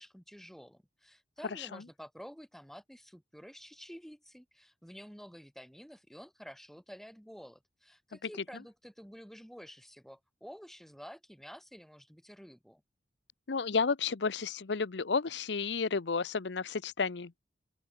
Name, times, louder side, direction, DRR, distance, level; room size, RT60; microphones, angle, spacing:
voice 1, 0.0-12.8, equal, ahead, 5.3 m, -50 dB
voice 2, 13.5-17.3, left 5 dB, 90° left, 0.7 m, -31 dB
open air
head